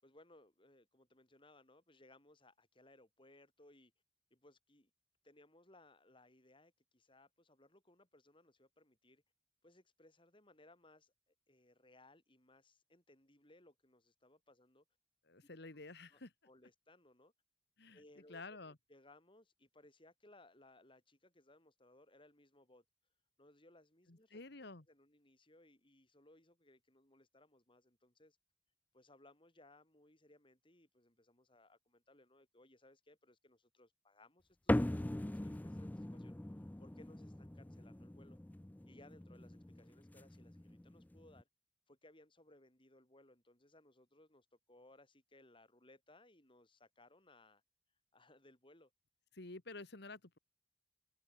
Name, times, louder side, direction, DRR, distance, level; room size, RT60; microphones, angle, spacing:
voice 1, 0.0-3.9 4.3-4.9 5.2-9.2 9.6-14.8 15.4-15.8 16.1-17.3 17.9-22.8 23.4-24.4 24.9-28.4 28.9-36.3 36.8-38.4 38.9-41.5 41.9-47.6 48.1-48.9, left 1 dB, 30° left, 6.3 m, -65 dB
voice 2, 15.3-16.3 17.8-18.0 18.3-18.7 24.1-24.8 49.3-50.4, left 3 dB, 65° left, 1.9 m, -51 dB
sound 1, 34.7-41.4, left 1 dB, 10° left, 0.4 m, -41 dB
head